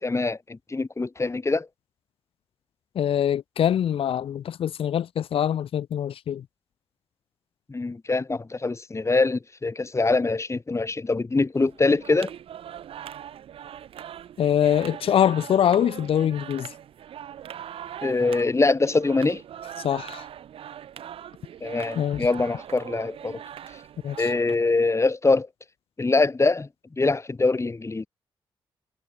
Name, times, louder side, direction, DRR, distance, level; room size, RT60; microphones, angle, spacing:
voice 1, 0.0-1.7 7.7-12.3 18.0-19.4 21.6-23.4 24.2-25.5 26.0-26.7 27.0-28.1, left 3 dB, 30° left, 3.7 m, -23 dB
voice 2, 2.9-6.4 14.4-16.7 19.8-20.2 21.9-22.3 24.0-24.3, left 9 dB, 75° left, 1.4 m, -24 dB
sound 1, 11.6-24.5, right 10 dB, 80° right, 5.6 m, -41 dB
cardioid pair, 60°, 10 cm